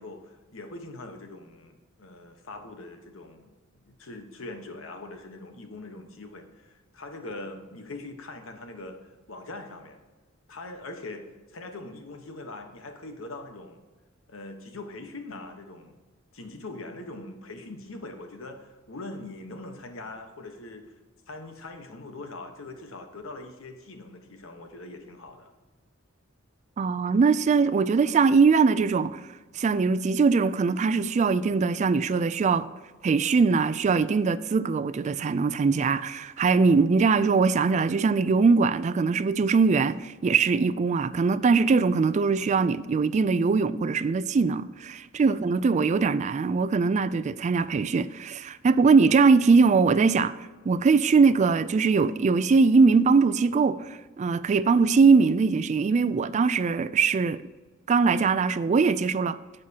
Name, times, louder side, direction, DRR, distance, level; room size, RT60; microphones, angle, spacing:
voice 1, 0.0-3.5 3.9-10.0 10.5-13.8 14.3-16.0 16.3-20.9 21.3-25.5 45.2-45.6, left 2 dB, 90° left, 1.2 m, -42 dB
voice 2, 26.8-29.2 29.5-32.7 33.0-50.3 50.7-57.4 57.9-59.4, right 4 dB, 35° right, 0.3 m, -21 dB
11.0 x 7.5 x 2.9 m
head